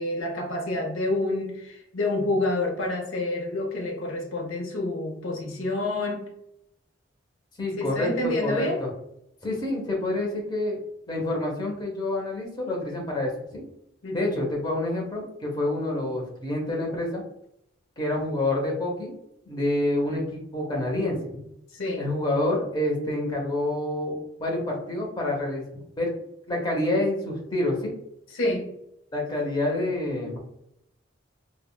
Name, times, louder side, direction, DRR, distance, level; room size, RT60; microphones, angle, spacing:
voice 1, 0.0-6.3 7.8-8.8 14.0-14.5 21.7-22.0 28.3-28.7, left 2 dB, 90° left, 2 dB, 0.6 m, -28 dB
voice 2, 7.6-8.9 9.4-10.8 11.1-13.6 14.1-17.2 18.0-19.1 19.5-21.4 22.0-25.6 26.0-26.1 26.5-27.9 29.1-30.4, left 1 dB, 20° left, -2 dB, 0.7 m, -27 dB
3.4 x 2.1 x 2.2 m, 0.79 s
head